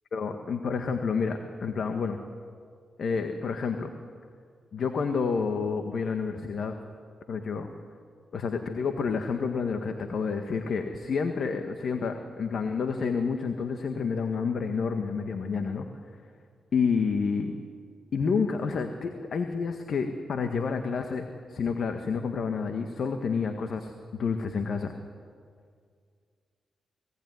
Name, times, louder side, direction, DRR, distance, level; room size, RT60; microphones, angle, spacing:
voice 1, 0.1-2.2 3.0-3.9 4.7-6.7 7.3-7.7 8.3-15.9 16.7-17.5 18.1-24.9, left 5 dB, 70° left, 6 dB, 1.7 m, -29 dB
26.0 x 18.5 x 9.6 m, 2.1 s
supercardioid pair, 50°, 0 cm